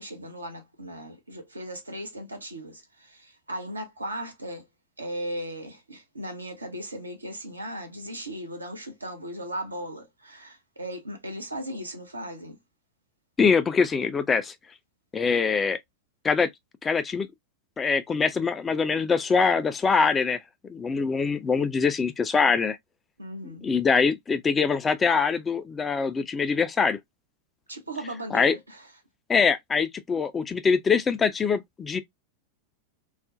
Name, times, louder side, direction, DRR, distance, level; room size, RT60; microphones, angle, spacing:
voice 1, 0.0-4.7 5.0-12.6 23.2-23.7 27.7-28.9, equal, 80° right, 0.7 m, -37 dB
voice 2, 13.4-14.5 15.1-15.8 16.2-16.5 16.8-17.3 17.8-22.8 23.6-27.0 28.3-28.5 29.3-32.0, left 5 dB, 20° left, 0.3 m, -23 dB
2.4 x 2.0 x 2.5 m
figure-of-eight pair, 90°, 0 cm